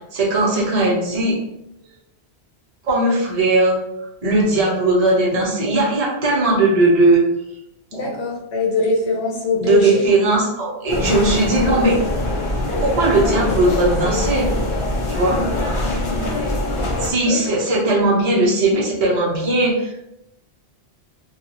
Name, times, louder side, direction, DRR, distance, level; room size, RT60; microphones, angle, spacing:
voice 1, 0.1-1.3 2.8-3.8 4.2-7.2 7.9-8.0 9.6-11.9 12.8-14.5 15.1-15.4 17.0-19.9, right 2 dB, 40° right, -5 dB, 0.8 m, -18 dB
voice 2, 7.9-10.0 15.4-15.5 15.8-16.4 17.3-17.4, left 2 dB, 85° left, -1 dB, 1.0 m, -22 dB
sound 1, 10.9-17.1, left 1 dB, 45° left, 0.4 m, -23 dB
2.8 x 2.4 x 2.7 m, 0.83 s
omnidirectional pair, 1.1 m